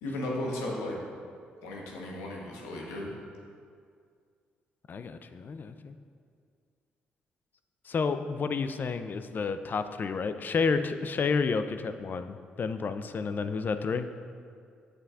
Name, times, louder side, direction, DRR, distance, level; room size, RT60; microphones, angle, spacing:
voice 1, 0.0-1.0 1.6-3.1, left 1 dB, 80° left, -2 dB, 1.0 m, -35 dB
voice 2, 4.9-6.0 7.9-14.1, left 5 dB, 45° left, 10 dB, 0.4 m, -30 dB
7.4 x 6.5 x 2.4 m, 2.2 s
hypercardioid pair, 45°, 4 cm